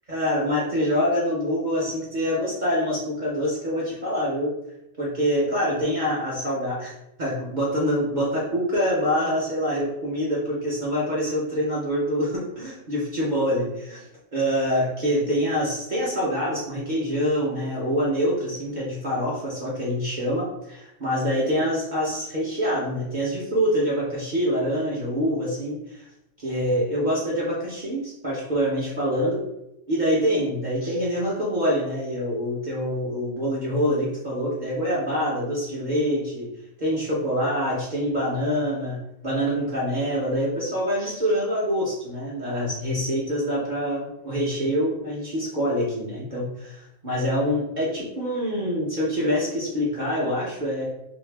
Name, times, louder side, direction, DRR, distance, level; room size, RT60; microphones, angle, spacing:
voice 1, 0.1-4.5 5.0-6.9 7.2-14.0 14.3-26.1 26.4-29.4 29.9-36.5 36.8-50.9, equal, 40° right, -6 dB, 0.7 m, -25 dB
2.7 x 2.7 x 3.3 m, 0.86 s
omnidirectional pair, 1.4 m